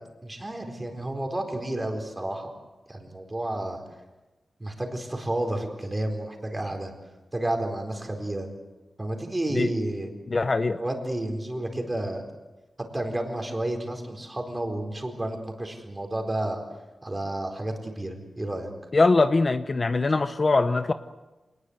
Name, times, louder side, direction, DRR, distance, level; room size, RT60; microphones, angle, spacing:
voice 1, 0.2-2.5 2.9-3.8 4.6-6.9 7.3-8.5 9.0-10.1 10.8-12.2 12.9-16.6 17.0-18.7, right 1 dB, 20° right, 3 dB, 4.3 m, -31 dB
voice 2, 10.3-10.8 18.9-20.9, left 3 dB, 35° left, 10 dB, 0.8 m, -22 dB
27.0 x 20.0 x 8.1 m, 1.1 s
wide cardioid pair, 135°, 0 cm